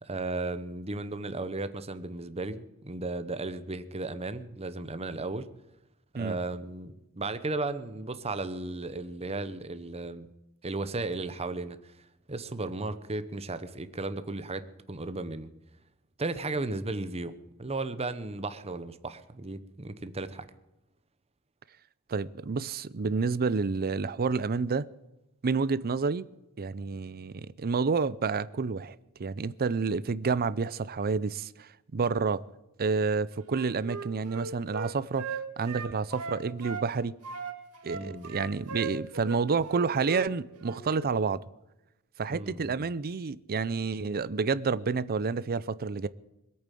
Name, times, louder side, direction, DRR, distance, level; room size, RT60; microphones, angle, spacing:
voice 1, 0.0-5.5 6.1-10.3 10.6-11.8 12.3-15.5 16.2-20.5 37.9-38.3 42.3-42.9, right 2 dB, 30° right, 0.9 m, -35 dB
voice 2, 22.1-24.9 25.4-26.3 26.6-32.4 32.8-37.1 37.8-41.4 42.2-46.1, right 4 dB, 45° right, 0.5 m, -29 dB
Wind instrument woodwind instrument, 33.4-36.9 37.2-40.3 40.6-40.8, right 5 dB, 85° right, 1.9 m, -38 dB
21.0 x 8.7 x 7.6 m
head